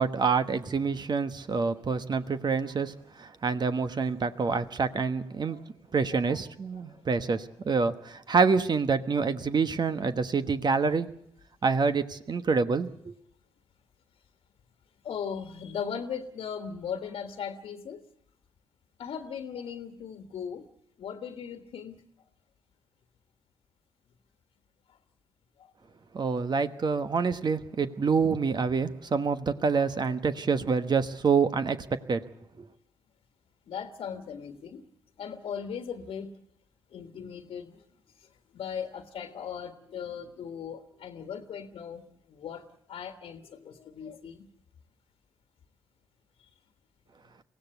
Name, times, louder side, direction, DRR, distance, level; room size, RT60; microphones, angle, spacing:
voice 1, 0.0-5.6 5.9-11.1 11.6-13.1 26.1-32.2 32.6-32.7, right 5 dB, 45° right, 10 dB, 1.3 m, -27 dB
voice 2, 6.1-6.4 15.0-18.0 19.0-20.6 21.0-22.0 29.1-30.2 33.7-34.8 35.2-36.3 36.9-37.8 38.5-42.6 42.9-44.5, left 7 dB, 65° left, 7 dB, 1.5 m, -38 dB
24.0 x 16.5 x 8.1 m, 0.72 s
hypercardioid pair, 45°, 10 cm